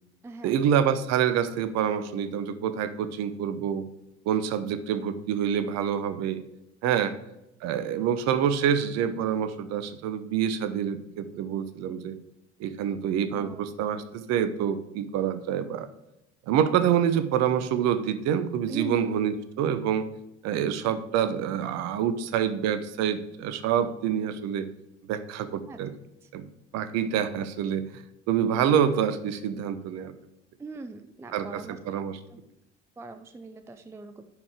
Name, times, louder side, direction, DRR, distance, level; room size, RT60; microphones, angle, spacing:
voice 1, 0.4-3.9 4.3-6.4 6.8-7.1 7.6-12.2 12.6-15.9 16.5-20.1 20.4-24.7 25.1-25.9 26.3-26.4 26.7-28.0 28.3-30.1 31.3-32.2, right 9 dB, 45° right, 12 dB, 0.9 m, -27 dB
voice 2, 6.8-7.2 13.3-13.6 18.7-19.2 25.7-25.8 26.2-26.3 30.6-31.8 32.3-32.4 33.0-34.2, right 3 dB, 5° right, 10 dB, 0.5 m, -40 dB
11.0 x 4.9 x 4.8 m, 0.88 s
figure-of-eight pair, 70°, 37 cm